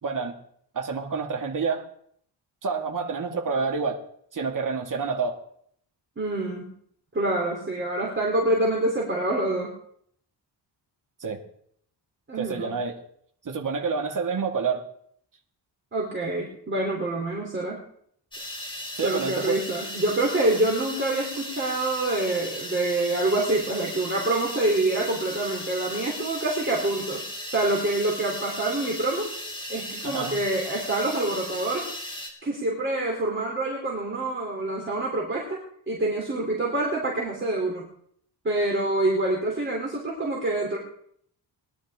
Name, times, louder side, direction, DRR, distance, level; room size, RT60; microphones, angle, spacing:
voice 1, 0.0-0.3 0.7-1.9 2.6-4.0 4.3-5.4 11.2-11.4 12.4-13.0 13.4-14.8 19.0-19.6 30.0-30.4, right 5 dB, 45° right, 2.1 m, -28 dB
voice 2, 6.2-6.7 7.1-9.7 12.3-12.7 15.9-17.8 19.0-27.2 27.5-29.3 29.7-31.9 32.4-37.9 38.4-40.8, right 2 dB, 25° right, 3.5 m, -26 dB
sound 1, 18.3-32.3, left 1 dB, 10° left, 3.7 m, -36 dB
21.0 x 11.5 x 3.7 m
cardioid pair, 120°, 43 cm